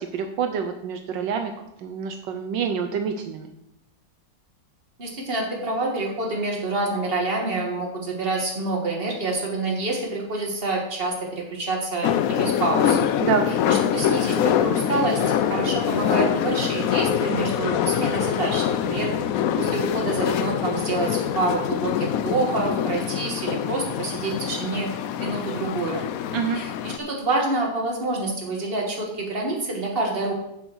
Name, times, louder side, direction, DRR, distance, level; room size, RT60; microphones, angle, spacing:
voice 1, 0.1-1.5 1.8-3.5 13.2-13.5 26.3-26.6, right 6 dB, 80° right, 6 dB, 1.4 m, -26 dB
voice 2, 5.0-13.0 13.5-19.1 19.6-24.9 25.2-26.0 26.5-30.3, right 2 dB, 30° right, -1 dB, 2.2 m, -27 dB
sound 1, 12.0-27.0, left 9 dB, 70° left, 0.8 m, -24 dB
7.2 x 7.1 x 6.1 m, 0.81 s
omnidirectional pair, 2.0 m